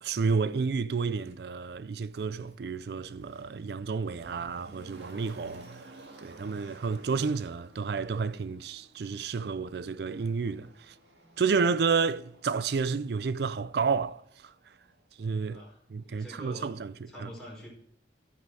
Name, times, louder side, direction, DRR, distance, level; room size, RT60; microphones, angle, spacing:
voice 1, 0.0-5.7 6.2-10.9 11.4-14.5 15.2-15.6 15.9-16.9 17.2-17.3, right 5 dB, 65° right, 0.4 m, -30 dB
Motor vehicle (road), 1.3-1.4 2.1-15.0 15.3-15.4, right 1 dB, 80° right, 2.0 m, -54 dB
voice 2, 15.4-15.8 16.0-16.7 17.1-17.7, equal, ahead, 4.8 m, -45 dB
15.5 x 5.7 x 4.8 m
head